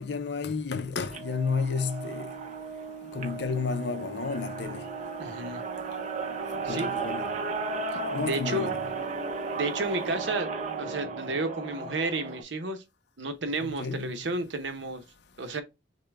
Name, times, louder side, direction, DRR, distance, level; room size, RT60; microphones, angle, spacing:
voice 1, 0.0-2.3 3.1-4.8 6.7-7.3 8.1-8.9 13.6-14.1, left 4 dB, 65° left, 0.6 m, -31 dB
sound 1, 1.0-12.4, right 4 dB, 40° right, 0.8 m, -35 dB
Organ, 1.1-11.7, right 5 dB, 20° right, 1.2 m, -42 dB
voice 2, 5.2-5.6 6.6-6.9 7.9-8.0 8.3-8.7 9.5-10.5 10.8-12.8 13.2-15.0 15.4-15.6, right 2 dB, 75° right, 0.9 m, -31 dB
6.6 x 2.2 x 3.4 m
head